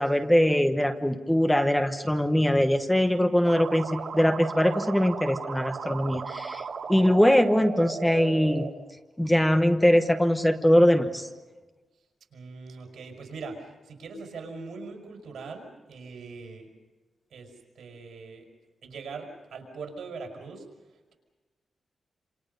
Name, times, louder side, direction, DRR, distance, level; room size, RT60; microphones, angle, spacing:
voice 1, 0.0-6.6 6.9-8.7 9.2-11.3, equal, 5° left, 7 dB, 1.1 m, -22 dB
sound 1, 3.4-8.7, right 5 dB, 65° right, 2.7 m, -35 dB
voice 2, 12.3-16.7 17.3-18.4 18.8-20.6, right 4 dB, 85° right, 3 dB, 5.8 m, -41 dB
28.0 x 27.5 x 5.5 m, 1.2 s
wide cardioid pair, 175°, 0 cm